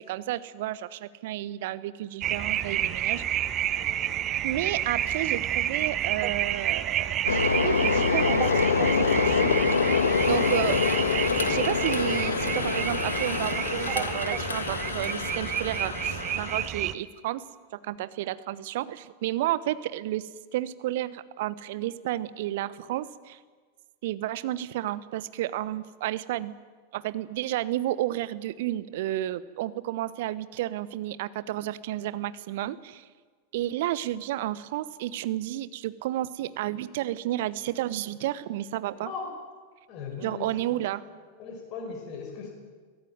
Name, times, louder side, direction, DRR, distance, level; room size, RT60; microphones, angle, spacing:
voice 1, 0.0-3.2 4.4-9.5 10.3-10.8 11.5-17.4 17.7-23.4 24.0-26.6 26.9-33.1 33.5-39.1 40.2-41.0, right 14 dB, 50° right, 16 dB, 1.1 m, -31 dB
sound 1, 2.2-16.9, right 11 dB, 30° right, 1.0 m, -30 dB
sound 2, 7.3-16.7, left 5 dB, 70° left, 1.6 m, -26 dB
voice 2, 39.9-41.1 41.4-42.5, left 5 dB, 35° left, 2 dB, 5.1 m, -38 dB
23.0 x 17.5 x 9.4 m, 1.5 s
figure-of-eight pair, 90°, 0 cm